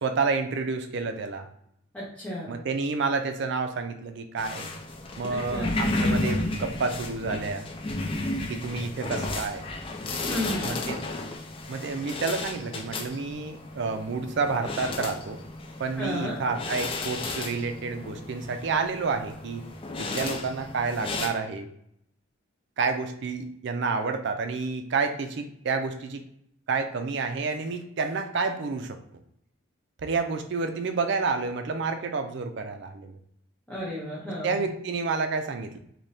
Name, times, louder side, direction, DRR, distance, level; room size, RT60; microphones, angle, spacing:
voice 1, 0.0-1.5 2.5-4.7 5.2-7.6 8.5-9.7 10.6-11.0 11.7-15.4 15.8-19.6 20.0-21.7 22.8-26.2 26.7-29.0 30.0-33.2 34.4-35.8, right 4 dB, 55° right, 7 dB, 0.4 m, -29 dB
voice 2, 1.9-2.5 5.5-5.7 10.2-10.7 16.0-16.4 33.7-34.6, equal, 5° left, -7 dB, 0.7 m, -33 dB
sound 1, 4.4-21.3, left 2 dB, 25° left, 0.3 m, -33 dB
3.3 x 2.8 x 2.7 m, 0.75 s
head